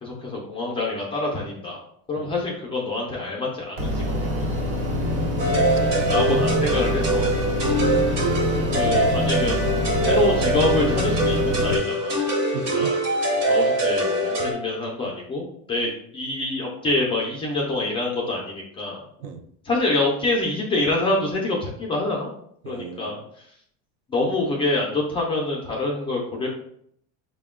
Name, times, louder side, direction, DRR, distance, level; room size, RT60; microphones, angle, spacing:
voice 1, 0.0-1.8 2.1-4.4 6.1-7.4 8.7-9.6 10.0-12.2 12.7-13.0 13.5-19.0 19.6-22.3 22.7-23.2 24.1-26.5, left 2 dB, 15° left, -3 dB, 0.4 m, -26 dB
sound 1, 3.8-11.8, left 2 dB, 75° right, 1.1 m, -25 dB
voice 2, 4.9-5.9 6.3-6.9 7.6-7.9 12.5-12.9 19.2-19.4 22.6-23.1, right 6 dB, 60° right, 7 dB, 0.5 m, -35 dB
sound 2, 5.4-14.5, right 1 dB, 40° right, 0.9 m, -23 dB
4.9 x 2.2 x 3.5 m, 0.68 s
cardioid pair, 180°, 39 cm